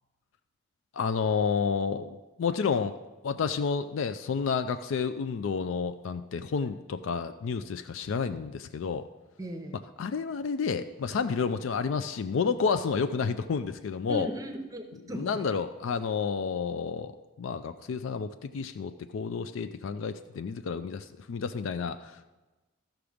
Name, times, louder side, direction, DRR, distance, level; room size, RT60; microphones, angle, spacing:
voice 1, 0.9-3.0 3.2-9.0 10.0-14.3 15.1-17.1 17.4-22.2, left 5 dB, 80° left, 10 dB, 0.4 m, -30 dB
voice 2, 9.4-9.8 14.1-15.5, right 1 dB, 15° right, 6 dB, 0.7 m, -37 dB
13.5 x 6.0 x 5.0 m, 1.1 s
head